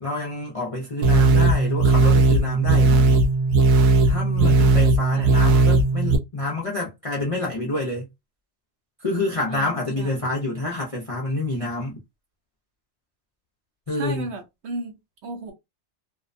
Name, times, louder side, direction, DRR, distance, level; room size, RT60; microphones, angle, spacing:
voice 1, 0.0-3.2 4.0-8.1 9.0-12.0 13.9-14.3, left 2 dB, 45° left, 0.4 m, -28 dB
sound 1, 1.0-6.2, right 2 dB, 85° right, 1.0 m, -17 dB
voice 2, 4.4-4.7 5.1-5.3 9.5-10.3 13.9-14.9 15.2-15.5, right 3 dB, 60° right, 0.9 m, -35 dB
2.6 x 2.1 x 2.5 m
omnidirectional pair, 1.4 m